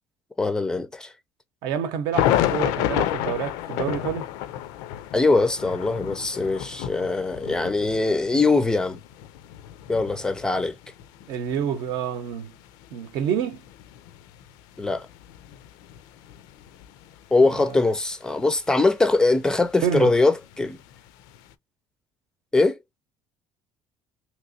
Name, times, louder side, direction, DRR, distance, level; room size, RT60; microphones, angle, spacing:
voice 1, 0.4-1.1 5.1-9.0 9.9-10.8 14.8-15.1 17.3-20.8 22.5-22.8, left 3 dB, 10° left, 0.4 m, -22 dB
voice 2, 1.6-4.3 11.3-12.5 12.9-13.6 17.5-17.8 19.8-20.1, right 8 dB, 70° right, 0.7 m, -28 dB
sound 1, 2.1-17.2 17.7-17.8 19.1-21.5, left 12 dB, 85° left, 0.4 m, -31 dB
2.9 x 2.9 x 2.6 m
cardioid pair, 150°, 7 cm